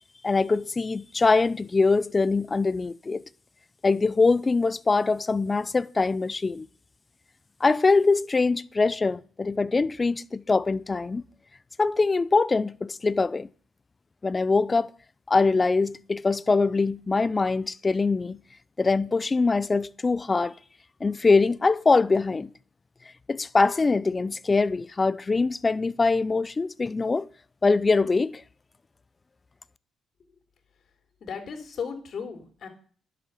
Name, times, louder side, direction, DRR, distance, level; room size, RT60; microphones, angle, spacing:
voice 1, 0.2-3.2 3.8-6.7 7.6-11.2 11.8-13.5 14.2-14.9 15.3-18.4 18.8-20.5 21.0-22.5 23.3-27.3 27.6-28.4, left 3 dB, 25° left, 0.6 m, -23 dB
voice 2, 31.2-32.7, left 6 dB, 60° left, 3.8 m, -35 dB
11.0 x 7.8 x 8.3 m
cardioid pair, 90°, 0 cm